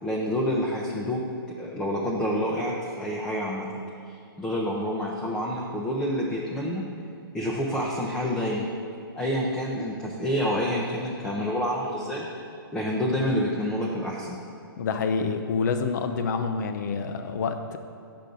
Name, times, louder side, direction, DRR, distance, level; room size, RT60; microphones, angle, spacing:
voice 1, 0.0-1.2 1.6-3.7 4.1-6.8 7.3-8.7 9.1-12.3 12.7-14.4, equal, 5° left, -3 dB, 0.6 m, -28 dB
voice 2, 14.8-17.8, left 5 dB, 50° left, 7 dB, 0.7 m, -27 dB
9.1 x 6.8 x 3.9 m, 2.6 s
hypercardioid pair, 150°, 12 cm